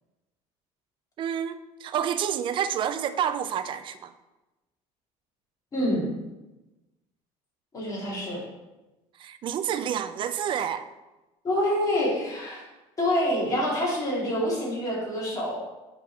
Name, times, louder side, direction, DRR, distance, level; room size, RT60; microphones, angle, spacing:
voice 1, 1.2-4.1 9.2-10.9, right 9 dB, 40° right, 11 dB, 0.4 m, -29 dB
voice 2, 5.7-6.1 7.7-8.4 11.4-12.6 13.0-15.6, equal, 25° left, -5 dB, 2.3 m, -26 dB
7.1 x 3.7 x 4.5 m, 1.1 s
cardioid pair, 135°, 13 cm